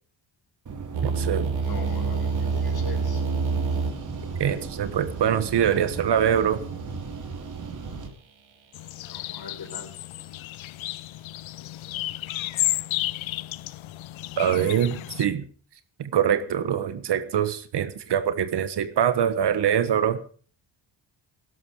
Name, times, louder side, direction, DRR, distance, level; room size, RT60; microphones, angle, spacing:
sound 1, 0.7-8.1, right 4 dB, 40° right, 2.8 m, -37 dB
sound 2, 0.9-6.9, right 4 dB, 85° right, 4.5 m, -28 dB
voice 1, 1.0-1.5 4.4-6.6 14.4-15.4 16.0-20.2, right 9 dB, 60° right, 12 dB, 1.5 m, -24 dB
voice 2, 1.6-3.2 9.0-9.9, left 5 dB, 50° left, 4 dB, 5.2 m, -41 dB
sound 3, 8.7-15.3, left 15 dB, 85° left, 0.7 m, -32 dB
19.0 x 11.5 x 4.9 m, 0.42 s
wide cardioid pair, 140°, 46 cm